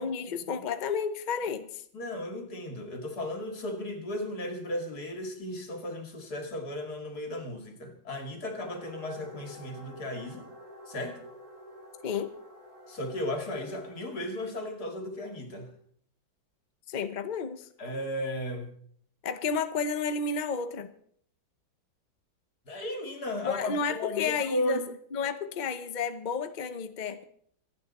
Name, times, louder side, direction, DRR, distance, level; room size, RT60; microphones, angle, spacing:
voice 1, 0.0-1.8 12.0-12.3 16.9-17.7 19.2-20.9 23.4-24.8 25.1-27.2, left 5 dB, 75° left, 10 dB, 0.4 m, -31 dB
voice 2, 1.9-10.5 10.9-11.2 12.9-15.7 17.8-18.7 22.7-24.9, left 1 dB, 50° left, 5 dB, 2.7 m, -35 dB
sound 1, 8.6-14.1, equal, 15° right, 2.7 m, -49 dB
26.0 x 9.3 x 4.2 m, 0.63 s
omnidirectional pair, 2.2 m